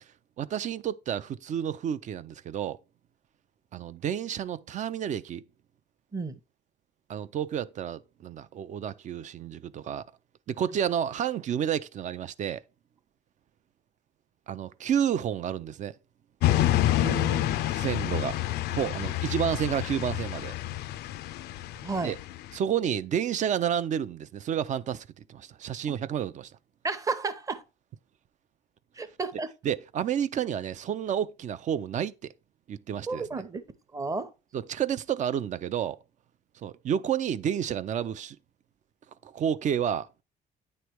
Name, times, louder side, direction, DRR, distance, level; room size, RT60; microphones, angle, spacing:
voice 1, 0.4-2.8 3.7-5.4 7.1-10.1 10.5-12.6 14.5-16.0 17.7-18.4 18.7-20.5 22.0-22.2 22.5-26.5 29.6-32.3 32.7-33.3 34.5-36.0 36.5-38.4 39.2-40.1, right 9 dB, 45° right, 0.5 m, -30 dB
sound 1, 16.4-22.5, left 14 dB, 75° left, 0.4 m, -28 dB
voice 2, 17.0-17.6 21.8-22.1 26.8-27.6 29.0-29.5 33.1-33.6 33.9-34.3, right 4 dB, 20° right, 0.8 m, -32 dB
9.4 x 3.3 x 4.6 m
cardioid pair, 110°, 17 cm